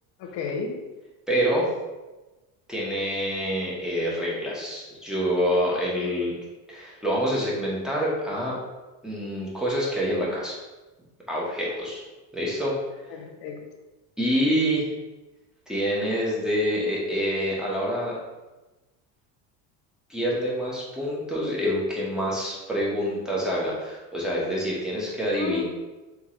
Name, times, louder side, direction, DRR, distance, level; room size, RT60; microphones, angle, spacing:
voice 1, 0.2-0.8 11.7-11.8 13.1-13.6 25.4-25.6, left 5 dB, 65° left, 2 dB, 0.9 m, -32 dB
voice 2, 1.3-1.7 2.7-6.4 6.7-8.6 9.0-10.6 11.3-12.0 12.3-12.8 14.2-14.9 15.7-18.2 20.1-25.6, equal, ahead, -6 dB, 1.1 m, -26 dB
3.6 x 3.6 x 3.1 m, 1.1 s
cardioid pair, 125°, 43 cm